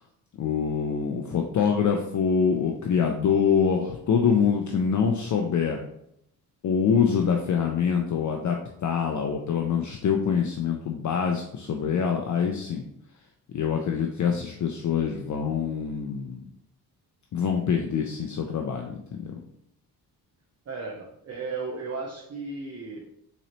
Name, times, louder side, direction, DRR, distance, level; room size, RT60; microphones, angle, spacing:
voice 1, 0.4-5.8 6.6-12.8 13.5-16.4 17.3-19.4, left 6 dB, 45° left, 3 dB, 0.5 m, -25 dB
voice 2, 20.7-23.0, right 4 dB, 35° right, -1 dB, 0.8 m, -35 dB
3.8 x 3.1 x 3.0 m, 0.75 s
supercardioid pair, 60°, 42 cm